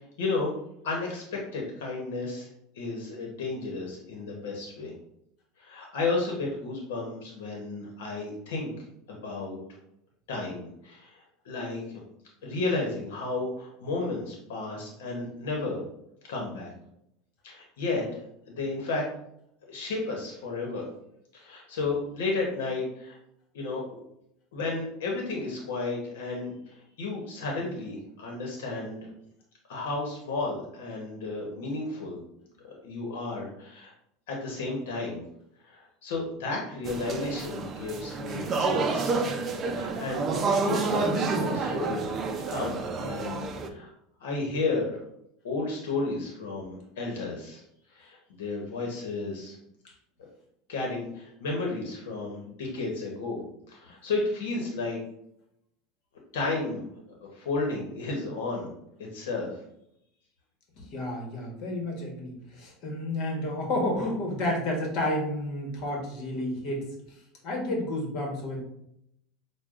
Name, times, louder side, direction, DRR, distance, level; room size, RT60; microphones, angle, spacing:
voice 1, 0.2-0.5 0.8-2.5 2.8-4.9 5.6-8.7 9.1-9.6 10.3-12.0 12.4-15.8 16.3-16.7 17.4-18.2 18.5-19.1 19.7-20.8 21.3-23.2 23.5-23.8 24.5-29.1 29.7-32.2 32.7-33.9 34.3-35.2 35.6-39.2 39.6-40.3 40.5-42.0 42.5-43.9 44.2-45.0 45.4-47.6 47.9-49.6 50.7-53.4 53.7-55.0 56.3-56.9 57.2-58.7 59.0-59.6, left 3 dB, 85° left, -1 dB, 0.9 m, -33 dB
sound 1, 36.8-43.7, right 4 dB, 30° right, 0.5 m, -29 dB
voice 2, 60.7-68.6, left 1 dB, 55° left, 0 dB, 1.2 m, -31 dB
6.3 x 2.2 x 2.4 m, 0.76 s
supercardioid pair, 125°, 0 cm